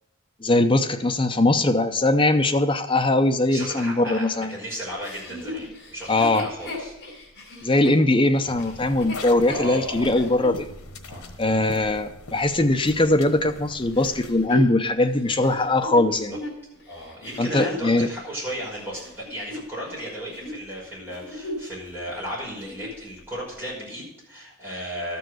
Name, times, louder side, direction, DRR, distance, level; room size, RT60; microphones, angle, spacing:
voice 1, 0.4-4.5 6.1-6.5 7.6-10.7 11.4-16.3 17.4-18.1, left 2 dB, 20° left, 6 dB, 0.6 m, -21 dB
voice 2, 3.5-7.0 9.5-10.3 11.1-11.2 16.1-16.4 16.9-25.2, equal, 10° right, -6 dB, 5.6 m, -35 dB
Chuckle chortle, 5.0-10.6 11.2-11.3 14.0-17.9 18.5-20.0 20.3-20.6 21.0-21.8 22.1-22.2 22.5-23.0 23.7-23.8, left 1 dB, 50° left, 4.5 m, -36 dB
sound 1, 8.5-14.5, left 2 dB, 85° left, 1.2 m, -41 dB
12.5 x 7.0 x 6.3 m, 0.86 s
head